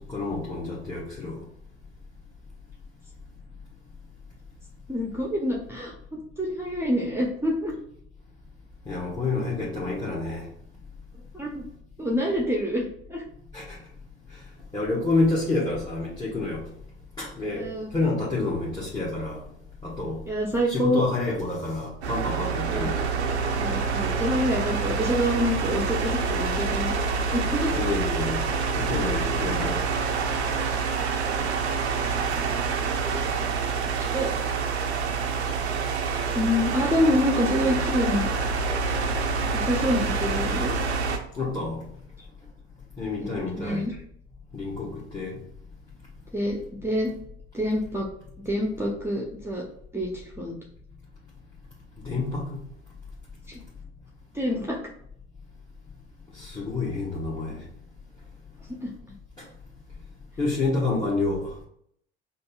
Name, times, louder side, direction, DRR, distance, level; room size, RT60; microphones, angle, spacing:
voice 1, 0.1-1.4 8.9-10.5 13.5-13.8 14.7-16.7 17.2-19.4 19.8-20.2 20.7-23.1 27.7-28.4 28.7-29.8 41.4-41.8 43.0-43.9 44.5-45.4 52.0-52.6 56.3-57.6 59.4-59.5 60.4-61.6, left 3 dB, 15° left, 1.1 m, -28 dB
voice 2, 4.9-7.7 11.3-11.7 12.0-13.2 17.5-17.9 20.3-21.0 22.7-22.9 23.6-26.9 27.3-27.7 29.3-29.5 31.2-31.6 33.7-34.3 35.8-35.9 36.3-38.3 39.5-40.7 43.2-44.0 46.3-47.1 47.5-48.1 48.4-49.6 49.9-50.6 53.5-53.6 54.3-54.8 58.8-58.9, left 1 dB, 10° right, 0.7 m, -27 dB
sound 1, 22.0-41.2, right 5 dB, 90° right, 0.5 m, -27 dB
5.3 x 2.4 x 2.3 m
figure-of-eight pair, 60°, 32 cm